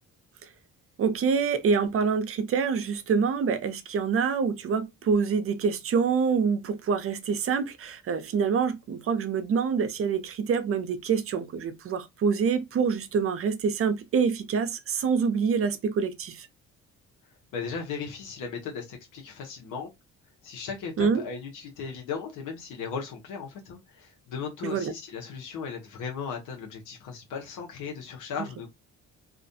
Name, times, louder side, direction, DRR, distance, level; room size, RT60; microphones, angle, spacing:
voice 1, 1.0-16.5 21.0-21.2 24.6-24.9, right 6 dB, 50° right, 0.5 m, -26 dB
voice 2, 17.5-19.9 20.4-28.7, left 6 dB, 85° left, 0.8 m, -37 dB
2.4 x 2.1 x 2.6 m
cardioid pair, 90°, 30 cm